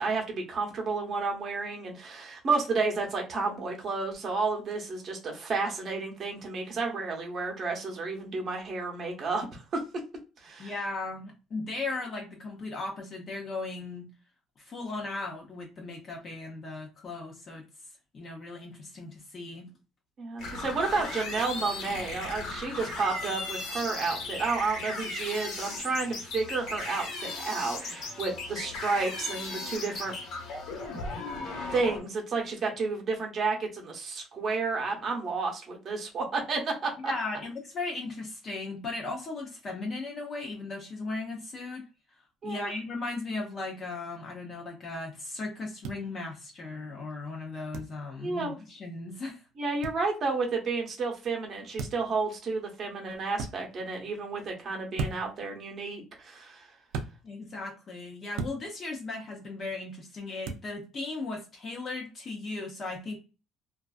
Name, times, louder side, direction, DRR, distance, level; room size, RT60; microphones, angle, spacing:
voice 1, 0.0-9.8 10.4-10.7 20.2-30.1 31.7-37.1 42.4-42.7 48.2-48.6 49.6-56.7, right 4 dB, 40° right, 1 dB, 0.8 m, -31 dB
voice 2, 10.6-14.1 14.6-17.6 18.1-19.7 37.0-41.8 42.4-49.4 57.2-63.2, left 3 dB, 35° left, 0 dB, 0.5 m, -37 dB
sound 1, 20.4-32.0, left 2 dB, 65° left, 1.1 m, -37 dB
sound 2, 45.8-46.0 47.7-47.9 49.8-50.0 51.8-52.1 53.3-53.5 54.9-55.4 56.9-57.1 58.3-58.6 60.4-60.7, right 4 dB, 85° right, 0.4 m, -34 dB
2.4 x 2.3 x 2.3 m, 0.31 s
cardioid pair, 145°, 0 cm